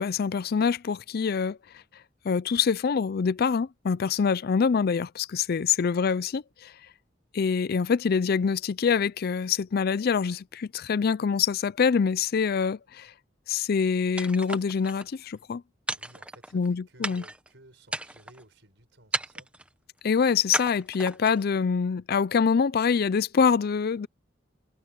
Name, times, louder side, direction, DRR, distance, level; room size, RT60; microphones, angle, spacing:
voice 1, 0.0-1.6 2.2-6.7 7.3-13.1 13.5-15.6 16.5-17.2 20.0-24.1, left 6 dB, 55° left, 0.4 m, -25 dB
sound 1, 14.2-15.1 15.9-16.7 17.0-17.5 17.9-18.4 19.1-19.7 20.5-21.4, right 1 dB, 5° right, 1.1 m, -34 dB
voice 2, 16.0-19.5, right 2 dB, 70° right, 6.2 m, -55 dB
head